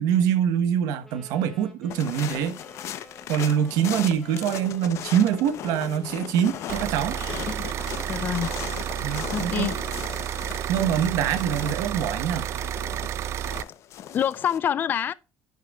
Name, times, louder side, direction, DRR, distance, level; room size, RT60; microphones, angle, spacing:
voice 1, 0.0-2.6 3.3-7.2 9.0-9.7 10.7-12.5, right 9 dB, 85° right, 1.0 m, -24 dB
Wind instrument woodwind instrument, 1.0-10.1, equal, 5° left, 1.8 m, -49 dB
sound 1, 1.9-14.6, left 10 dB, 55° left, 0.7 m, -38 dB
sound 2, 6.7-13.6, right 10 dB, 50° right, 0.4 m, -31 dB
voice 2, 8.1-8.5 9.3-9.8 14.1-15.1, left 9 dB, 35° left, 0.3 m, -26 dB
10.5 x 6.6 x 2.3 m
cardioid pair, 155°, 6 cm